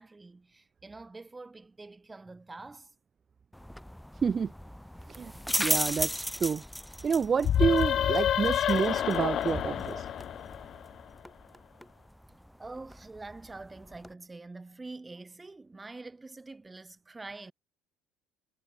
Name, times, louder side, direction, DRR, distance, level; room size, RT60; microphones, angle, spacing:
voice 1, 0.0-2.9 9.7-10.0 12.6-17.5, right 3 dB, 15° right, 6.0 m, -46 dB
sound 1, 3.5-14.1, equal, 5° left, 1.4 m, -37 dB
voice 2, 4.2-4.5 5.1-5.3 5.6-6.6 7.0-10.0, right 6 dB, 30° right, 1.7 m, -28 dB
sound 2, 7.4-11.0, left 10 dB, 45° left, 0.5 m, -28 dB
figure-of-eight pair, 60°, 0 cm